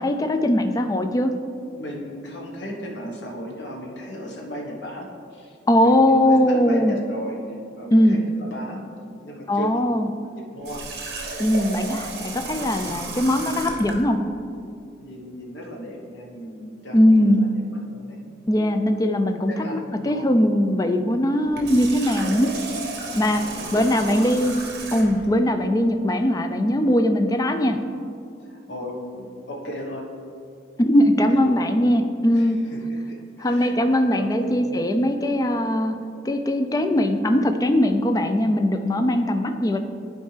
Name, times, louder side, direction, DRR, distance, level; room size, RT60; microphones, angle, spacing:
voice 1, 0.0-1.3 5.7-6.9 7.9-8.2 9.5-10.1 11.4-14.2 16.9-17.5 18.5-19.5 20.0-22.5 23.2-23.4 23.7-24.5 24.9-27.8 30.8-32.6 33.4-35.9 36.2-39.8, left 1 dB, 20° left, 6 dB, 0.3 m, -20 dB
voice 2, 1.7-8.8 9.2-9.7 10.5-10.8 15.0-17.6 17.9-18.2 19.5-20.4 23.1-24.4 28.4-30.0 31.3-31.6 32.3-34.8 39.3-39.6, equal, 70° left, -1 dB, 1.2 m, -36 dB
Water tap faucet, 10.6-14.0 21.4-25.3, right 3 dB, 55° right, 1.0 m, -34 dB
11.0 x 4.4 x 3.3 m, 2.5 s
head